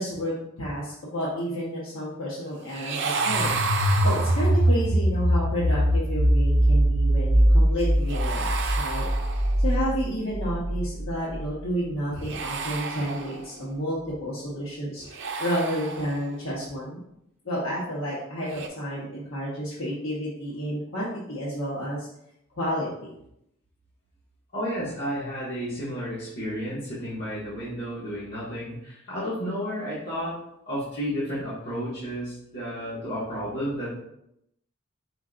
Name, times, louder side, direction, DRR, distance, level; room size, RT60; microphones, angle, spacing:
voice 1, 0.0-3.5 4.0-9.1 9.6-17.0 17.4-22.1 22.6-23.1, equal, 85° left, -7 dB, 1.1 m, -30 dB
sound 1, 2.7-4.9 8.1-9.7 12.1-13.7 15.0-16.4 18.4-18.7, right 4 dB, 60° right, 0.5 m, -31 dB
sound 2, 3.2-11.9, equal, 40° left, 1.6 m, -22 dB
voice 2, 24.5-30.4 30.6-33.9, equal, 55° left, -11 dB, 1.5 m, -32 dB
5.0 x 3.8 x 2.5 m, 0.79 s
head